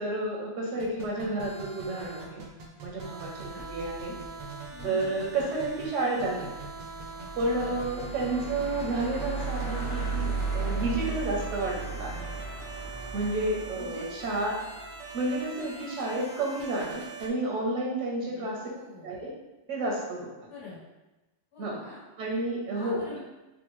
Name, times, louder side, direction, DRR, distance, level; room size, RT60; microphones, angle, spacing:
voice 1, 0.0-2.4 2.8-4.1 4.8-6.5 7.4-12.3 13.1-14.5 15.1-18.6 19.0-19.3 19.7-20.3 21.6-21.8 22.2-23.2, right 2 dB, 90° right, -2 dB, 1.0 m, -31 dB
sound 1, 0.8-17.3, right 4 dB, 55° right, 0.5 m, -43 dB
voice 2, 3.2-3.6 4.7-5.1 7.5-7.8 10.6-11.0 13.7-14.1 18.2-19.1 20.5-20.8 21.5-22.0 22.7-23.2, left 3 dB, 60° left, -10 dB, 1.5 m, -45 dB
sound 2, 3.3-15.4, right 4 dB, 80° left, 1.1 m, -37 dB
3.6 x 2.1 x 3.0 m, 1.0 s
omnidirectional pair, 1.2 m